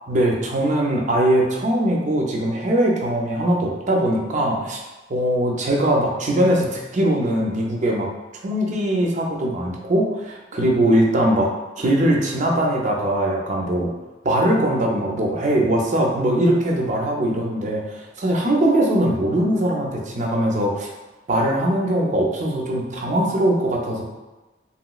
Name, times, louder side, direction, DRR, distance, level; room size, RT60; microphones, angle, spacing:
voice 1, 0.1-4.8 5.1-8.1 8.4-11.5 11.8-13.9 14.2-20.9 21.3-24.0, right 1 dB, 40° right, 0 dB, 0.4 m, -21 dB
3.0 x 2.9 x 2.3 m, 1.1 s
head